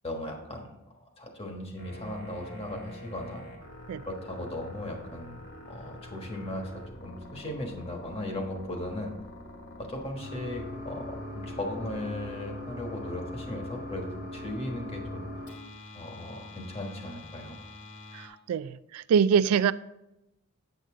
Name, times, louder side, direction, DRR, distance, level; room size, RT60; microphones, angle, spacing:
voice 1, 0.0-0.7 1.2-3.4 4.1-5.4 5.7-6.7 7.0-9.1 9.8-15.3 15.9-17.6, left 1 dB, 25° left, 2 dB, 1.3 m, -37 dB
sound 1, 1.8-18.3, left 1 dB, 55° left, 2.0 m, -43 dB
voice 2, 18.1-19.7, right 7 dB, 80° right, 16 dB, 0.3 m, -24 dB
8.1 x 7.7 x 3.7 m, 0.91 s
head